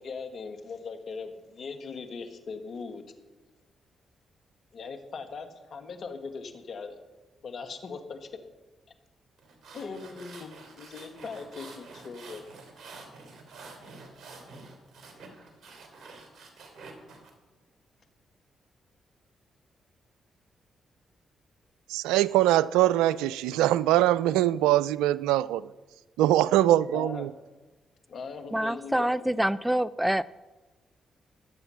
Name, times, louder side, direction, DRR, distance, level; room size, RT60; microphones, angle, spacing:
voice 1, 0.0-3.0 4.7-7.0 7.4-8.3 9.7-10.5 10.8-12.4 26.9-27.3 28.1-29.1, left 4 dB, 60° left, 1.8 m, -39 dB
sound 1, 9.4-17.3, right 3 dB, 65° right, 3.1 m, -48 dB
voice 2, 21.9-25.7 26.2-27.3, right 14 dB, 85° right, 0.3 m, -23 dB
voice 3, 28.5-30.2, right 1 dB, 5° right, 0.5 m, -26 dB
20.5 x 7.9 x 5.8 m
hypercardioid pair, 45°, 0 cm